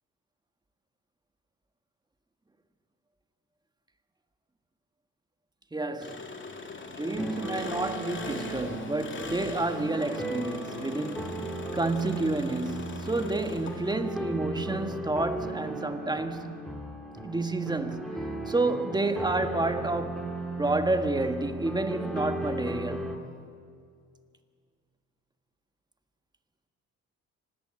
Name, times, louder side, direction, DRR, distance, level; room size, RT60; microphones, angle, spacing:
voice 1, 5.7-6.3 6.9-11.3 11.7-16.6 17.2-18.2 18.5-20.3 20.6-23.2, right 2 dB, 15° right, 1.7 m, -30 dB
Engine, 6.0-14.1, left 4 dB, 40° left, 2.7 m, -41 dB
sound 1, 7.2-23.2, right 2 dB, ahead, 3.0 m, -36 dB
26.0 x 18.5 x 8.9 m
cardioid pair, 90°, 30 cm